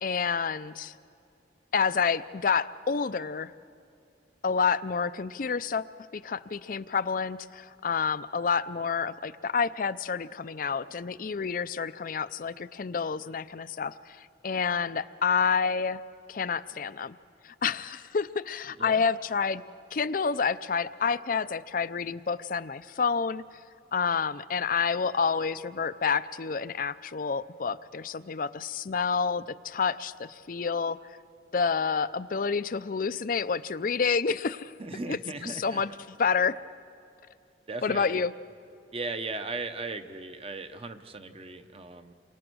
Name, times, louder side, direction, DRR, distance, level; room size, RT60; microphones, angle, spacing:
voice 1, 0.0-0.9 1.7-3.5 4.4-5.9 6.1-16.0 16.3-17.1 17.4-19.6 19.9-23.4 23.9-31.0 31.5-34.7 35.1-35.2 35.4-35.9 36.2-36.6 37.8-38.3, left 5 dB, 50° left, 14 dB, 0.5 m, -29 dB
voice 2, 34.8-35.8 37.7-38.2 38.9-42.1, right 3 dB, 35° right, 8 dB, 1.0 m, -37 dB
29.5 x 24.0 x 6.3 m, 2.5 s
head